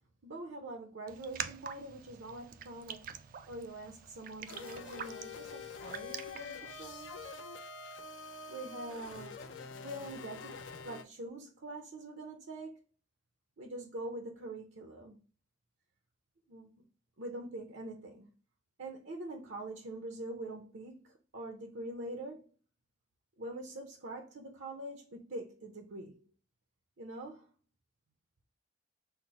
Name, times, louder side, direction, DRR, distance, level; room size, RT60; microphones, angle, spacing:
voice 1, 0.2-7.4 8.5-9.3 9.8-10.6 10.8-12.8 13.6-15.2 16.5-16.8 17.2-18.3 18.8-22.5 23.4-26.2 27.0-27.5, right 1 dB, 75° right, 0.7 m, -44 dB
Raindrop, 1.1-7.3, right 8 dB, 45° right, 0.3 m, -46 dB
sound 1, 4.5-11.0, left 4 dB, 75° left, 0.5 m, -46 dB
5.8 x 2.0 x 4.1 m
head